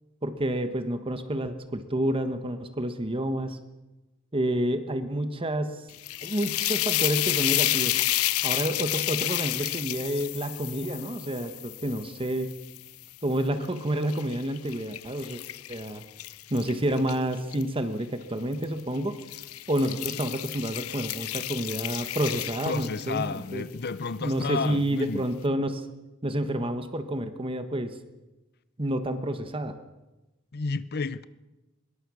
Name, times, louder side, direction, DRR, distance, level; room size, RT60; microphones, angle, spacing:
voice 1, 0.2-3.6 4.3-5.8 6.2-7.9 8.4-12.5 13.2-15.4 15.7-16.0 16.5-19.2 19.7-23.6 24.2-25.9 26.2-28.0 28.8-29.7, right 1 dB, 25° right, 1.3 m, -29 dB
sound 1, 5.9-13.1 13.7-17.6 18.5-18.8 19.2-23.4, left 15 dB, 85° left, 0.7 m, -31 dB
voice 2, 22.6-25.2 30.5-31.3, left 4 dB, 50° left, 0.7 m, -31 dB
24.5 x 21.5 x 6.3 m
head